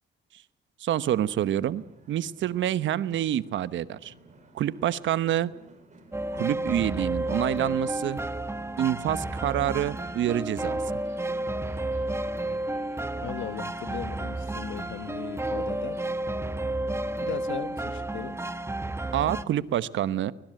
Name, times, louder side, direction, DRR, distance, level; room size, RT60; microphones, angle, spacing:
voice 1, 0.8-4.1 4.5-5.5 6.3-8.2 8.8-10.8 19.1-20.3, right 11 dB, 70° right, 1.1 m, -27 dB
sound 1, 1.0-16.7, right 2 dB, 35° right, 6.5 m, -55 dB
sound 2, 6.1-19.4, right 1 dB, 15° right, 1.4 m, -31 dB
voice 2, 13.2-16.0 17.2-18.4, left 11 dB, 75° left, 1.1 m, -37 dB
23.5 x 22.0 x 7.7 m
cardioid pair, 90°, 20 cm